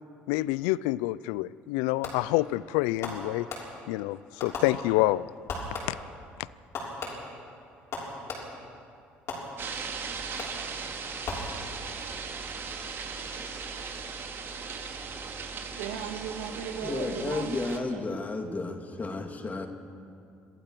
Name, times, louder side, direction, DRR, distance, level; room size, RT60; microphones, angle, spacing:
voice 1, 0.3-3.5 3.9-5.3 5.9-6.0, left 18 dB, 80° left, 19 dB, 0.4 m, -27 dB
Fireworks, 2.0-2.5 3.0-4.0 4.4-5.2 5.5-6.2 6.7-8.7 9.3-9.9 10.4-10.8 11.2-12.0, left 3 dB, 60° left, 6.8 m, -38 dB
sound 1, 9.6-17.8, right 5 dB, 50° right, 2.8 m, -38 dB
voice 2, 15.7-18.0, right 7 dB, 85° right, 4 dB, 1.8 m, -37 dB
voice 3, 16.8-19.7, left 3 dB, 30° left, 4 dB, 2.9 m, -32 dB
26.5 x 15.5 x 6.8 m, 2.5 s
hypercardioid pair, 65°, 5 cm